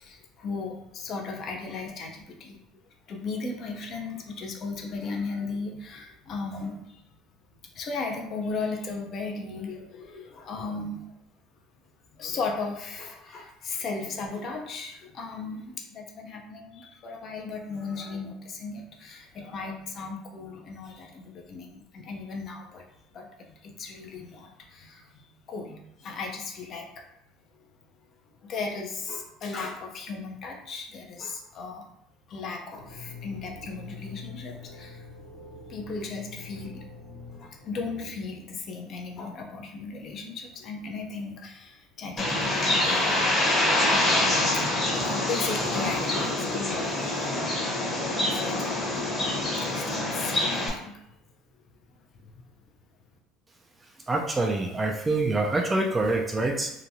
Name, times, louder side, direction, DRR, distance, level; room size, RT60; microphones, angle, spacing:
voice 1, 0.0-2.6 3.1-7.1 7.7-11.0 12.1-22.8 23.1-27.1 28.4-31.9 32.3-35.1 35.7-36.9 37.3-47.8 48.2-51.0 52.1-52.5, left 4 dB, 50° left, 2 dB, 0.6 m, -36 dB
sound 1, 32.7-38.8, left 4 dB, 85° left, 1.0 m, -45 dB
Bird, 42.2-50.7, left 1 dB, 25° left, 0.9 m, -26 dB
voice 2, 54.1-56.7, right 2 dB, 20° right, 1 dB, 0.4 m, -25 dB
2.9 x 2.2 x 2.6 m, 0.81 s
hypercardioid pair, 80°, 0 cm